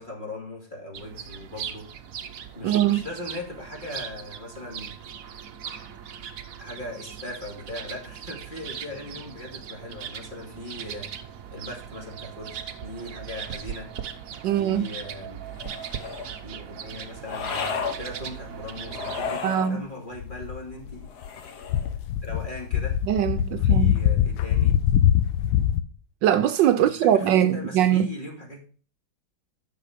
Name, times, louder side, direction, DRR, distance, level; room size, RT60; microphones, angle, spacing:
voice 1, 0.0-1.9 2.5-4.9 6.6-11.1 11.5-13.9 14.5-15.4 16.4-21.1 21.5-21.7 22.2-23.0 23.5-24.8 26.7-28.6, left 1 dB, 25° left, 2.6 m, -39 dB
sound 1, 0.9-19.4, right 8 dB, 55° right, 1.1 m, -39 dB
voice 2, 2.6-3.0 14.4-14.8 19.4-19.8 23.0-23.9 26.2-28.1, right 10 dB, 75° right, 1.2 m, -21 dB
sound 2, 15.5-16.4 17.2-18.0 18.9-19.8 21.1-21.9, left 6 dB, 60° left, 1.6 m, -33 dB
sound 3, 20.2-21.3 21.6-25.8, left 10 dB, 90° left, 1.5 m, -23 dB
10.0 x 6.6 x 5.0 m
omnidirectional pair, 2.1 m